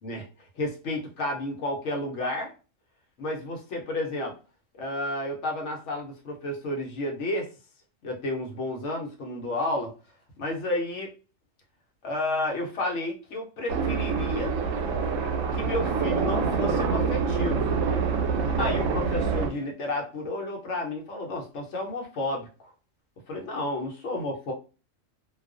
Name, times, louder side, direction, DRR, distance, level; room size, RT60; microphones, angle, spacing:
voice 1, 0.0-2.5 3.2-4.4 4.7-7.5 8.0-9.9 10.4-11.1 12.0-14.5 15.5-17.8 18.6-22.7 23.3-24.5, left 1 dB, 70° left, 0 dB, 1.0 m, -31 dB
sound 1, 13.7-19.5, right 5 dB, 80° right, 0.9 m, -26 dB
2.3 x 2.2 x 2.4 m, 0.33 s
omnidirectional pair, 1.3 m